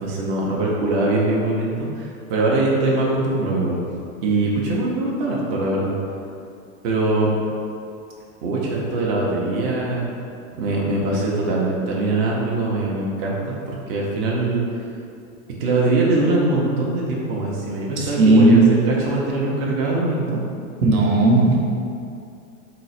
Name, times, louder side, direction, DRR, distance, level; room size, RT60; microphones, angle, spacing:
voice 1, 0.0-3.8 4.2-6.0 6.8-7.3 8.4-10.0 10.5-14.6 15.6-20.4, right 2 dB, 45° right, -4 dB, 0.6 m, -22 dB
voice 2, 18.0-18.8 20.8-21.6, right 2 dB, 80° right, -3 dB, 0.9 m, -15 dB
3.7 x 2.0 x 4.1 m, 2.5 s
supercardioid pair, 145°, 42 cm